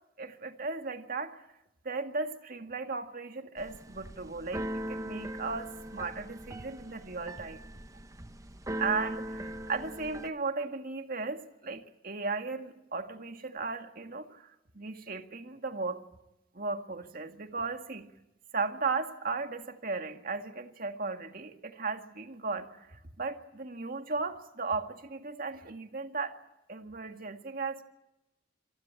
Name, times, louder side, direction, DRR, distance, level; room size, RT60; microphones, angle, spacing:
voice 1, 0.2-1.4 1.8-7.6 8.8-14.5 14.7-16.0 16.5-18.1 18.5-26.4 26.7-27.8, right 4 dB, 50° right, 6 dB, 1.9 m, -36 dB
Keyboard (musical), 3.6-10.3, right 1 dB, 15° right, 1.0 m, -40 dB
27.0 x 18.5 x 8.8 m, 0.92 s
head